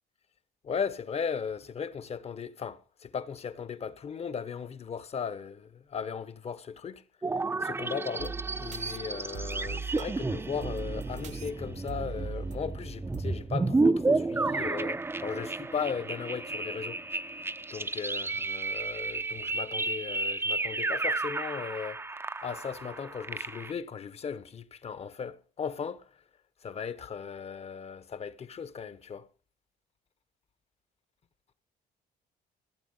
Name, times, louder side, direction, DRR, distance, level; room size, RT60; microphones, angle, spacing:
voice 1, 0.6-7.0 7.6-17.0 17.7-22.0 22.4-26.0 26.6-29.3, left 6 dB, 40° left, 1.1 m, -37 dB
sound 1, 7.2-23.7, right 3 dB, 15° right, 0.6 m, -32 dB
sound 2, 8.2-13.2, right 5 dB, 45° right, 0.9 m, -40 dB
15.5 x 8.6 x 5.5 m
cardioid pair, 110°, 17 cm